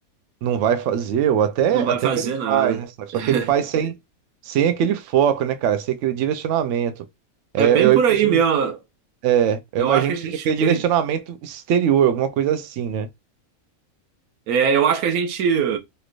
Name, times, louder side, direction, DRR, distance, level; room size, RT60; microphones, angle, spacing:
voice 1, 0.4-2.1 2.5-3.9 4.5-7.0 7.5-8.0 8.2-8.4 9.2-13.1, right 9 dB, 65° right, 0.8 m, -21 dB
voice 2, 1.7-2.8 3.1-3.5 7.6-8.8 9.8-10.8 14.5-15.8, right 7 dB, 85° right, 1.2 m, -21 dB
3.1 x 2.9 x 2.4 m
omnidirectional pair, 1.5 m